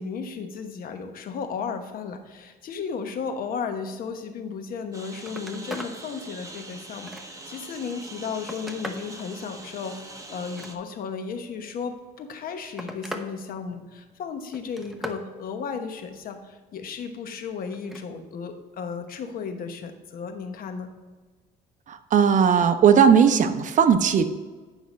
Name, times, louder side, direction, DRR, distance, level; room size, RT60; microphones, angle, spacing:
voice 1, 0.0-20.9, left 6 dB, 60° left, 7 dB, 1.1 m, -34 dB
Telephone, 4.7-4.9 5.2-6.0 6.4-7.5 8.1-9.1 10.4-11.2 12.2-13.3 13.6-14.1 14.5-15.2 17.7-18.1 19.5-19.6, equal, ahead, 0.9 m, -39 dB
Engine, 4.9-10.8, right 2 dB, 20° right, 1.1 m, -43 dB
voice 2, 21.9-24.3, right 7 dB, 50° right, 9 dB, 0.8 m, -18 dB
9.9 x 5.7 x 4.2 m, 1.3 s
cardioid pair, 110°, 17 cm